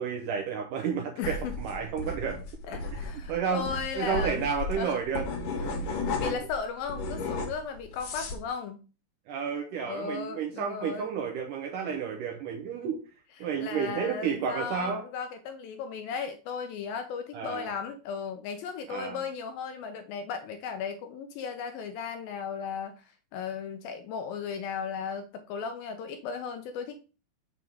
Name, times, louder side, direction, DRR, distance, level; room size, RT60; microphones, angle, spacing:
voice 1, 0.0-2.4 3.3-3.7 4.0-5.3 9.3-13.0 13.4-15.1 17.3-17.7 18.9-19.2, right 6 dB, 75° right, 2 dB, 2.0 m, -31 dB
voice 2, 1.2-1.5 2.7-4.4 4.8-5.0 5.7-8.8 9.9-11.1 13.6-22.9 23.3-27.0, left 6 dB, 80° left, 7 dB, 2.2 m, -36 dB
sound 1, 1.2-6.6 6.9-8.4, left 3 dB, 60° left, 3.0 m, -33 dB
6.9 x 3.6 x 6.2 m, 0.34 s
omnidirectional pair, 4.6 m